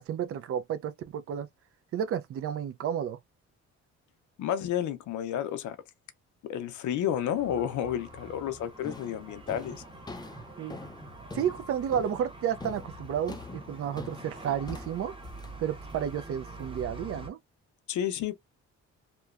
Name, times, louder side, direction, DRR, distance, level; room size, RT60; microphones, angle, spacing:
voice 1, 0.0-1.5 1.9-3.2 10.6-10.8 11.3-15.1 15.6-17.4, right 9 dB, 50° right, 0.5 m, -31 dB
voice 2, 4.4-5.8 6.4-9.8 17.9-18.3, left 10 dB, 75° left, 0.6 m, -31 dB
sound 1, 7.0-17.3, right 1 dB, 15° right, 0.9 m, -46 dB
sound 2, 8.0-8.3 8.8-16.8, left 3 dB, 15° left, 0.4 m, -45 dB
2.9 x 2.1 x 2.4 m
cardioid pair, 90°, 30 cm